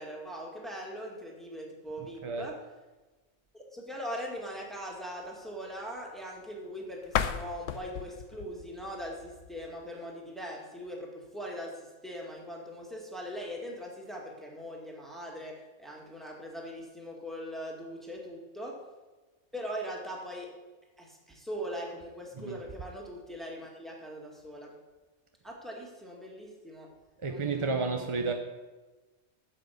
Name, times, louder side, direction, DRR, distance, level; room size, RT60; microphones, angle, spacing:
voice 1, 0.0-2.6 3.5-18.8 19.5-20.5 21.0-24.8 25.4-26.9 27.3-28.3, equal, ahead, 2.0 m, -41 dB
sound 1, 7.0-9.9, left 8 dB, 85° left, 1.0 m, -35 dB
voice 2, 27.2-28.3, right 4 dB, 35° right, 0.6 m, -31 dB
8.5 x 7.5 x 8.3 m
omnidirectional pair, 1.3 m